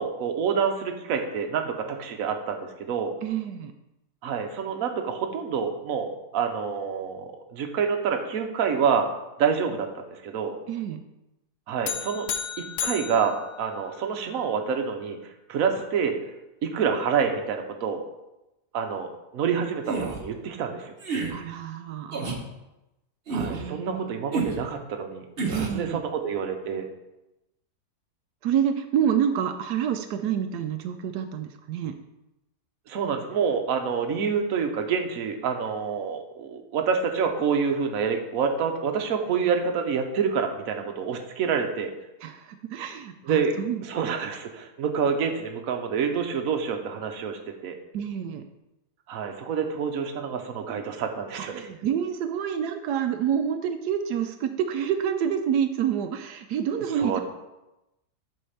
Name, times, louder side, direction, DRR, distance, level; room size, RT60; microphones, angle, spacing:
voice 1, 0.0-3.1 4.2-9.1 9.4-10.6 11.7-12.3 12.8-15.2 15.5-16.2 16.6-18.0 18.7-20.9 23.3-25.3 25.6-26.9 32.9-41.9 43.2-47.7 49.1-51.7 56.7-57.2, right 6 dB, 65° right, 5 dB, 1.2 m, -27 dB
voice 2, 3.2-3.7 10.7-11.0 21.3-22.2 23.5-24.1 25.4-26.0 28.4-32.0 42.2-43.8 47.9-48.5 51.4-57.2, right 8 dB, 85° right, 7 dB, 1.1 m, -28 dB
sound 1, 11.9-14.3, left 8 dB, 80° left, 1.2 m, -34 dB
sound 2, 19.8-20.2 21.0-21.3 22.1-22.4 23.3-23.6 24.3-24.6 25.4-25.8, right 4 dB, 40° right, 1.2 m, -29 dB
8.2 x 4.3 x 5.7 m, 0.95 s
omnidirectional pair, 1.7 m